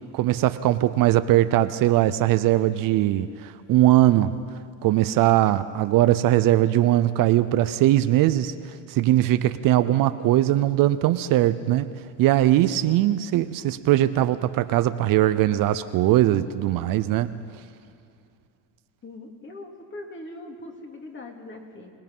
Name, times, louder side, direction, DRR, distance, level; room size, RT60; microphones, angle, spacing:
voice 1, 0.1-4.4 4.8-11.9 12.2-17.4, right 14 dB, 60° right, 12 dB, 0.7 m, -20 dB
voice 2, 19.0-21.9, left 2 dB, 30° left, 2 dB, 2.7 m, -41 dB
26.0 x 19.0 x 5.5 m, 2.4 s
cardioid pair, 130°, 39 cm